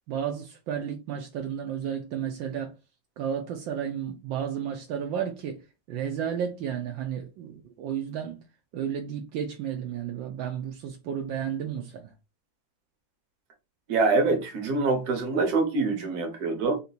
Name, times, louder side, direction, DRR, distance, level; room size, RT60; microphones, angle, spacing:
voice 1, 0.1-2.8 3.2-8.4 8.7-12.1, right 8 dB, 75° right, 1.4 m, -32 dB
voice 2, 13.9-16.8, right 3 dB, 55° right, 1.5 m, -25 dB
4.3 x 2.9 x 4.0 m
omnidirectional pair, 2.2 m